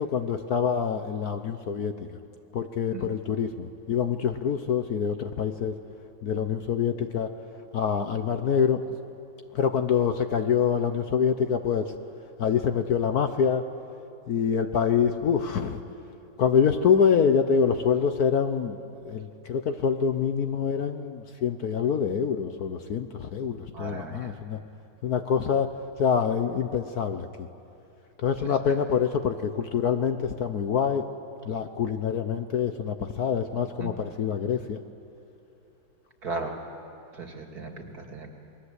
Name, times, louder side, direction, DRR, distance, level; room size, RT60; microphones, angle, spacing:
voice 1, 0.0-2.1 2.5-5.7 6.2-7.3 7.7-8.8 9.5-11.9 12.4-13.6 14.3-15.8 16.4-18.8 19.0-24.6 25.0-25.7 26.0-27.5 28.2-31.1 31.4-34.8, left 7 dB, 60° left, 8 dB, 1.2 m, -25 dB
voice 2, 23.7-24.3 28.4-28.5 33.8-33.9 36.2-36.6 37.1-38.3, right 3 dB, 50° right, 3 dB, 2.8 m, -36 dB
28.5 x 21.0 x 8.2 m, 2.8 s
omnidirectional pair, 2.1 m